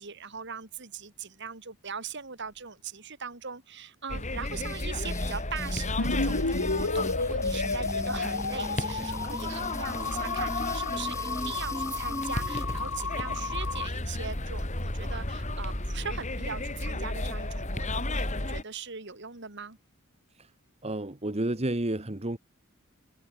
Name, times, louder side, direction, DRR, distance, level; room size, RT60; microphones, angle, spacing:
voice 1, 0.0-19.8, right 6 dB, 60° right, 3.1 m, -40 dB
sound 1, 4.1-18.6, left 2 dB, 35° left, 3.7 m, -33 dB
sound 2, 4.5-12.8, left 1 dB, 15° left, 6.6 m, -39 dB
sound 3, 6.0-13.9, left 3 dB, 80° left, 2.0 m, -32 dB
voice 2, 20.8-22.4, right 1 dB, 30° right, 1.5 m, -31 dB
head